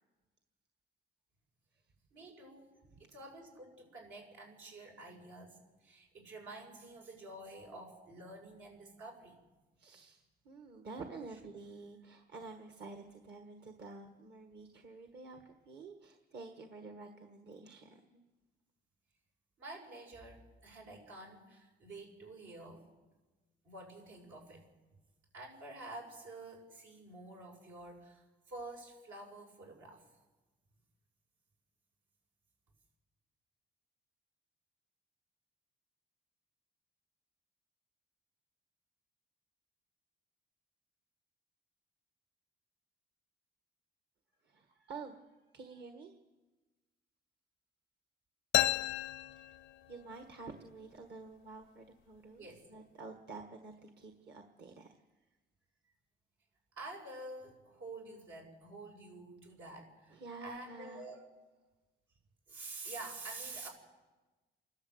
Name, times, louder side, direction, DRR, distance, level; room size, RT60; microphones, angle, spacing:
voice 1, 2.1-9.4 19.6-22.8 23.6-24.6 25.3-30.1 52.4-52.7 56.7-61.2 62.5-63.7, right 2 dB, 85° right, 0 dB, 6.0 m, -49 dB
voice 2, 9.8-18.2 44.4-46.2 49.3-49.5 49.9-55.0 55.8-55.9 60.1-61.0, right 3 dB, 60° right, 5 dB, 1.6 m, -50 dB
sound 1, 48.5-50.2, left 14 dB, 90° left, 0.6 m, -33 dB
28.0 x 12.5 x 8.0 m, 1.2 s
cardioid pair, 90°, 20 cm